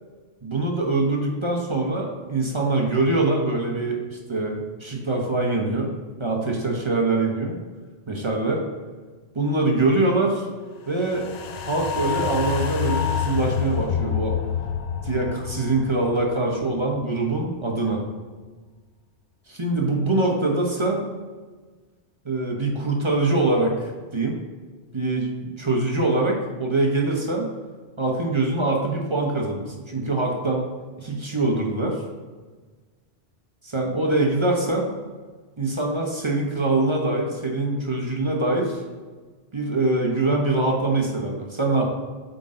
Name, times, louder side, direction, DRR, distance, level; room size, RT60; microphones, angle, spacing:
voice 1, 0.4-5.9 6.2-7.6 8.1-8.6 9.3-10.5 10.9-11.3 11.7-14.4 15.0-18.0 19.5-21.1 22.2-24.4 24.9-25.3 25.6-27.5 28.0-30.7 31.0-32.0 33.6-34.9 35.6-38.8 39.5-41.9, right 2 dB, 25° right, 0 dB, 0.9 m, -23 dB
sound 1, 11.0-17.4 17.7-17.8, left 8 dB, 60° left, 0.4 m, -28 dB
8.2 x 3.9 x 3.7 m, 1.4 s
omnidirectional pair, 1.2 m